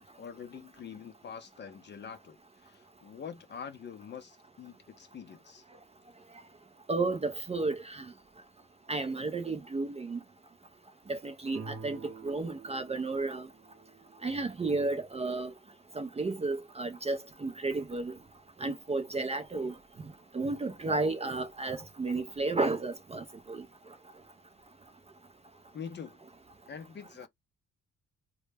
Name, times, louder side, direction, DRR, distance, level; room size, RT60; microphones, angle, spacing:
voice 1, 0.0-5.6 25.7-26.2 26.7-27.3, left 7 dB, 35° left, 0.5 m, -45 dB
voice 2, 6.9-8.0 8.9-10.2 11.1-12.0 12.2-13.4 14.2-15.5 16.0-18.1 18.6-19.7 20.3-23.6, right 3 dB, 20° right, 0.4 m, -32 dB
sound 1, 11.5-15.1, right 5 dB, 60° right, 0.9 m, -49 dB
2.1 x 2.0 x 3.2 m
cardioid pair, 90°, 30 cm